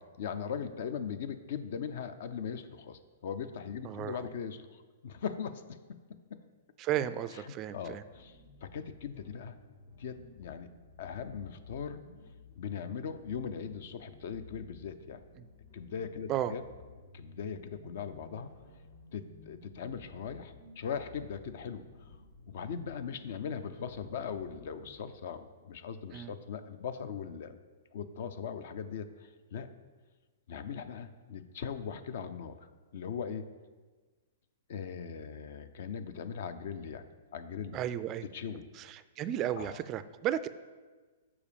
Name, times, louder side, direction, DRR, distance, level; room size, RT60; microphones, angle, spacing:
voice 1, 0.0-6.4 7.3-9.6 10.0-10.7 11.0-12.0 12.6-15.2 15.7-16.6 17.1-18.5 19.1-22.1 22.5-27.6 27.9-29.7 30.5-32.6 32.9-33.5 34.7-37.1 37.3-37.8 38.2-38.7 39.6-39.8, left 7 dB, 65° left, 11 dB, 0.5 m, -40 dB
voice 2, 3.8-4.3 6.8-8.0 16.3-16.5 26.1-26.3 37.7-38.2 38.8-40.5, right 11 dB, 30° right, 14 dB, 0.3 m, -34 dB
sound 1, 8.1-25.0, left 2 dB, 85° left, 2.2 m, -56 dB
7.1 x 4.9 x 5.1 m, 1.4 s
hypercardioid pair, 125°, 0 cm